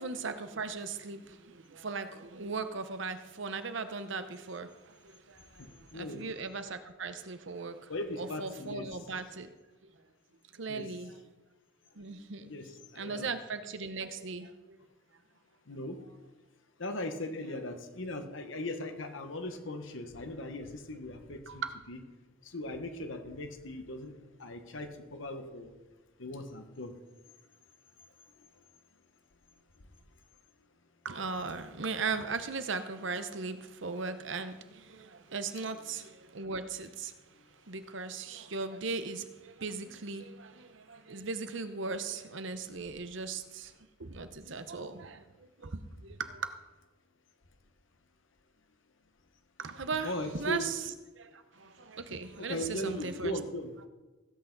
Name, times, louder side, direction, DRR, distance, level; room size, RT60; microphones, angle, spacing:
voice 1, 0.0-9.5 9.8-10.1 10.5-11.2 11.9-12.5 12.9-14.8 21.5-21.7 31.0-43.7 44.0-46.5 49.6-53.4, right 4 dB, 65° right, 10 dB, 0.8 m, -38 dB
voice 2, 5.6-6.2 7.9-8.8 10.7-10.8 12.0-12.1 12.4-13.3 15.7-16.0 16.8-21.6 21.9-22.0 22.4-25.7 26.2-26.9 28.4-28.5 50.0-50.6 52.5-53.7, left 1 dB, 70° left, 6 dB, 1.3 m, -39 dB
16.5 x 8.4 x 4.0 m, 1.2 s
head